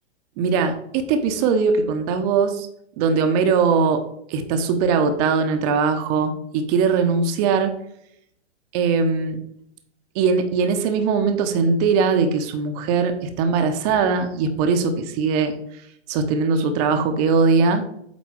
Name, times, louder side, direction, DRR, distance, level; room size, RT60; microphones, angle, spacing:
voice 1, 0.4-2.7 3.0-4.0 4.3-7.7 8.7-9.4 10.1-15.5 16.1-17.8, right 5 dB, 35° right, 7 dB, 0.9 m, -20 dB
8.4 x 3.9 x 4.7 m, 0.73 s
figure-of-eight pair, 115°, 35 cm